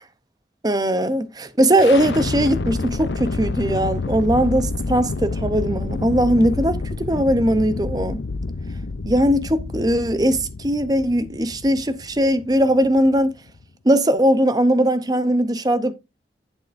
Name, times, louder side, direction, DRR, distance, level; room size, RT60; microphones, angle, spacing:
voice 1, 0.6-8.2 9.0-13.3 13.8-15.9, right 1 dB, 20° right, 0.7 m, -19 dB
sound 1, 1.8-13.6, left 3 dB, 80° left, 0.6 m, -28 dB
10.5 x 8.3 x 2.6 m
head